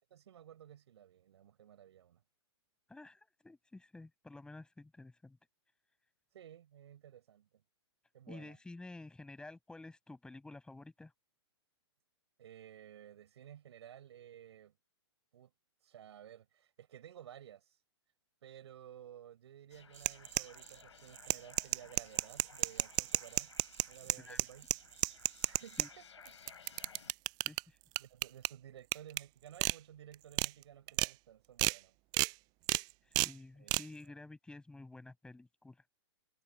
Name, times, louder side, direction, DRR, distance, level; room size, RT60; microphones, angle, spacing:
voice 1, 0.1-2.2 6.3-7.6 8.1-8.6 12.4-14.7 15.3-15.5 15.8-17.8 18.4-23.5 23.9-24.7 25.4-26.3 28.0-32.0 33.5-33.8, right 10 dB, 70° right, 4.9 m, -55 dB
voice 2, 2.9-5.4 8.3-11.1 24.2-24.4 25.8-25.9 27.4-27.8 33.1-35.8, left 2 dB, 5° left, 6.2 m, -51 dB
sound 1, 19.7-27.1, left 7 dB, 80° left, 5.7 m, -58 dB
sound 2, 20.0-20.8 21.2-25.9 26.3-27.6 28.0-28.5 28.9-29.2 29.6-29.8 30.1-30.5 30.9-31.1 31.6-31.8 32.1-32.3 32.7-32.8 33.2-33.3 33.7-33.8, right 24 dB, 30° right, 0.4 m, -31 dB
hypercardioid pair, 125°, 15 cm